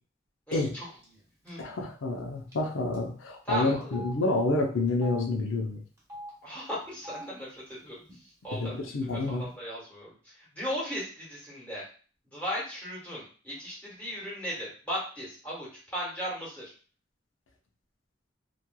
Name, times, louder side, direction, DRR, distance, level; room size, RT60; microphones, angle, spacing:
voice 1, 0.5-0.9 1.4-1.7 3.4-4.0 6.4-8.0 8.4-11.8 12.3-16.6, equal, 10° left, -7 dB, 1.1 m, -37 dB
Telephone, 1.0-1.2 1.5-1.6 2.5-2.7 2.9-3.0 3.8-4.1 4.9-5.2 6.0-6.3 6.9-7.2 8.1-8.2 8.4-9.1, equal, 15° right, 0.9 m, -43 dB
voice 2, 1.6-5.8 8.5-9.4, left 2 dB, 90° left, 1 dB, 0.6 m, -28 dB
3.0 x 2.4 x 2.3 m, 0.39 s
head